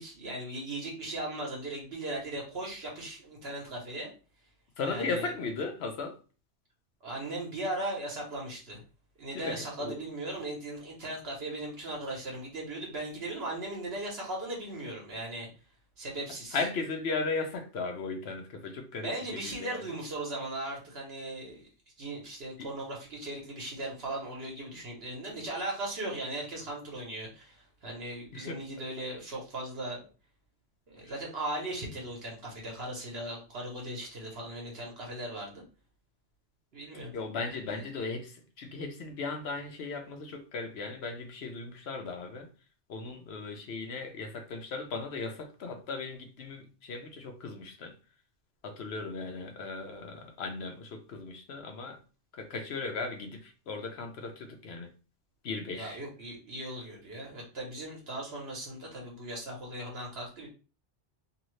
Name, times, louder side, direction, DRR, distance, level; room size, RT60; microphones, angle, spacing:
voice 1, 0.0-4.1 4.8-5.3 7.0-8.8 9.2-15.5 16.0-16.6 19.0-21.7 22.0-30.1 30.9-35.6 36.7-37.1 37.6-37.8 55.7-60.5, right 1 dB, 60° right, 1.1 m, -38 dB
voice 2, 4.8-6.2 9.3-10.0 16.5-19.8 22.6-22.7 28.3-28.6 31.0-31.1 37.1-42.5 42.9-47.9 48.6-52.0 52.3-54.9 55.4-56.0, left 4 dB, 65° left, 0.8 m, -37 dB
2.7 x 2.6 x 3.1 m
omnidirectional pair, 1.2 m